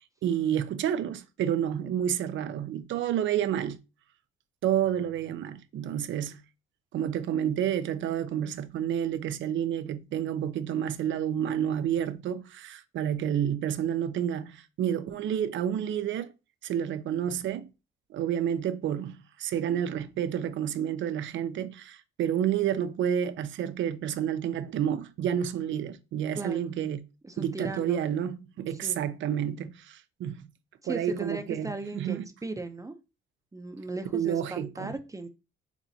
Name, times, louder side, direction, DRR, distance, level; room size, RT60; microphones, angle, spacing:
voice 1, 0.0-3.8 4.6-6.4 6.9-16.3 16.6-17.7 18.1-27.0 27.4-30.5 30.9-32.3 34.1-34.9, right 9 dB, 75° right, 0.6 m, -30 dB
voice 2, 26.4-26.7 27.2-28.0 28.8-29.0 30.8-33.0 33.5-35.3, right 2 dB, 15° right, 0.6 m, -37 dB
7.2 x 2.6 x 2.7 m
cardioid pair, 90°, 20 cm